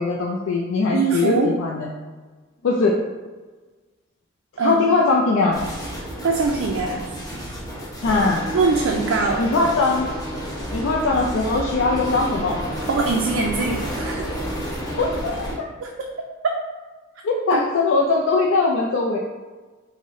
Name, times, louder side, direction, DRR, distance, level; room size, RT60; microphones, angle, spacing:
voice 1, 0.0-1.9 2.6-3.0 4.6-5.6 8.0-8.4 9.4-10.1 10.7-12.6 15.0-15.4 17.2-19.2, left 3 dB, 75° left, -2 dB, 0.4 m, -20 dB
voice 2, 0.9-1.5 4.6-4.8 6.2-7.0 8.5-9.4 12.9-14.3 15.8-15.9 17.5-17.6, right 4 dB, 65° right, 0 dB, 0.3 m, -22 dB
sound 1, 5.5-15.5, equal, 20° left, 1.0 m, -30 dB
3.9 x 2.1 x 3.6 m, 1.3 s
head